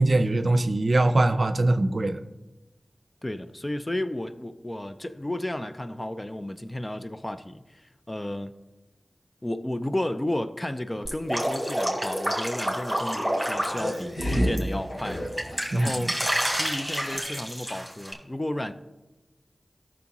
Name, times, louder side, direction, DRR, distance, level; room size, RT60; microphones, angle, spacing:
voice 1, 0.0-2.2 15.7-15.9, right 2 dB, 60° right, 0.5 m, -22 dB
voice 2, 3.2-8.5 9.4-15.3 15.7-16.2 16.5-18.7, left 1 dB, 25° left, 0.5 m, -32 dB
Drip, 11.0-14.6 15.0-18.1, equal, 5° right, 2.7 m, -29 dB
sound 1, 13.0-17.4 17.7-17.8, equal, 80° left, 3.3 m, -32 dB
14.0 x 6.3 x 3.0 m
cardioid pair, 40°, 0 cm